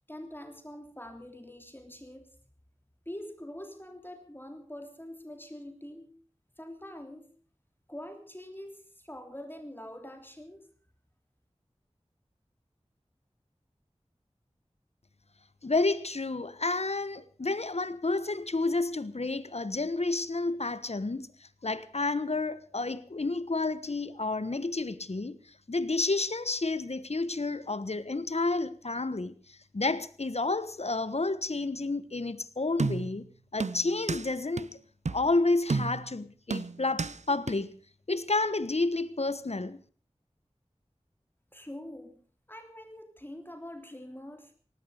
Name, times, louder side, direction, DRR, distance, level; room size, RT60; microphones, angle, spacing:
voice 1, 0.1-2.3 3.0-6.1 6.6-7.3 7.9-10.6 41.5-42.2 42.5-44.5, left 1 dB, 20° left, 3.2 m, -44 dB
voice 2, 15.6-25.4 25.7-33.2 33.5-34.8 35.1-37.8 38.1-39.8, left 3 dB, 65° left, 1.3 m, -30 dB
sound 1, 32.8-33.2 33.6-34.3 34.6-34.7 35.1-35.3 35.7-36.1 36.5-37.2 37.5-37.6, right 4 dB, 80° right, 0.7 m, -31 dB
18.5 x 15.5 x 5.0 m
wide cardioid pair, 50°, 12 cm